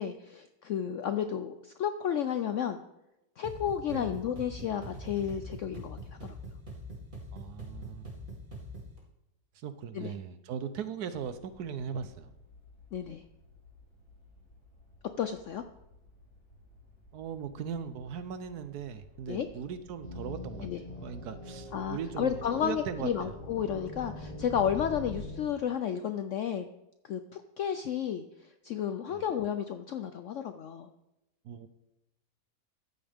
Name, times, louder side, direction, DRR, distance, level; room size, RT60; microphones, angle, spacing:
voice 1, 0.0-2.8 3.4-6.4 9.9-10.1 12.9-13.2 15.2-15.6 19.3-19.5 20.6-20.8 21.7-26.7 27.0-28.2 28.6-30.9, left 9 dB, 70° left, 9 dB, 0.7 m, -32 dB
sound 1, 3.4-9.0, equal, 50° right, 2.7 m, -43 dB
voice 2, 7.3-8.1 9.6-12.3 17.1-20.7 21.0-23.1 29.1-29.2 31.4-31.7, right 7 dB, 70° right, 11 dB, 1.2 m, -39 dB
sound 2, 11.1-25.3, left 1 dB, 50° left, 3.2 m, -51 dB
sound 3, 20.0-25.5, left 1 dB, 30° left, 0.9 m, -44 dB
13.5 x 8.8 x 3.5 m, 0.90 s
omnidirectional pair, 1.8 m